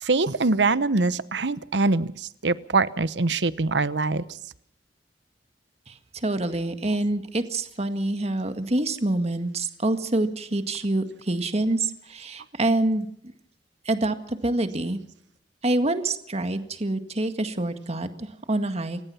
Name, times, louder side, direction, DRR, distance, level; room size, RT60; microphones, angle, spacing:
voice 1, 0.0-4.3, right 3 dB, 75° right, 16 dB, 1.0 m, -23 dB
voice 2, 5.9-13.1 13.8-15.0 15.6-19.1, right 2 dB, 35° right, 8 dB, 1.8 m, -26 dB
29.0 x 16.0 x 5.8 m, 0.71 s
head